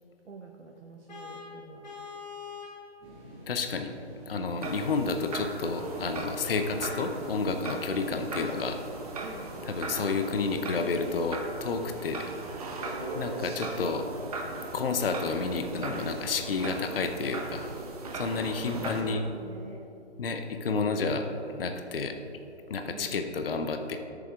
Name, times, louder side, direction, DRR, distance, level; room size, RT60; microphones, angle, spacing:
voice 1, 0.2-1.9 4.3-4.7 9.2-9.7 18.3-18.5 18.8-19.9 22.9-23.3, right 4 dB, 85° right, 1 dB, 1.0 m, -46 dB
Vehicle horn car horn honking, 1.1-2.9, left 5 dB, 40° left, 1.8 m, -42 dB
sound 1, 3.0-10.6, left 1 dB, 10° left, 2.3 m, -54 dB
voice 2, 3.5-3.9 4.3-8.8 9.7-12.3 13.1-14.1 14.7-17.7 18.1-19.2 20.2-22.2 22.7-24.0, left 4 dB, 55° left, 6 dB, 0.7 m, -30 dB
sound 2, 4.6-19.0, right 2 dB, 35° right, 1.0 m, -38 dB
12.5 x 6.9 x 3.6 m, 2.9 s
hypercardioid pair, 165°, 34 cm